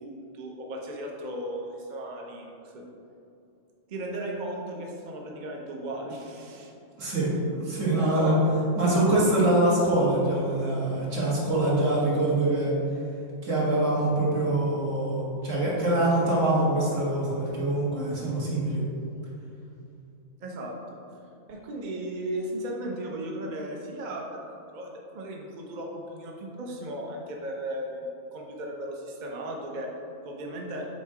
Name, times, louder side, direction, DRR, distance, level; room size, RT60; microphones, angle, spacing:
voice 1, 0.0-2.8 3.9-6.7 8.0-8.5 20.4-21.0 21.5-29.9 30.2-30.9, right 1 dB, 45° right, -1 dB, 0.7 m, -36 dB
voice 2, 7.0-8.4 8.8-12.7 13.4-18.8, right 1 dB, 70° right, -6 dB, 1.8 m, -24 dB
7.2 x 2.9 x 4.7 m, 2.6 s
omnidirectional pair, 1.4 m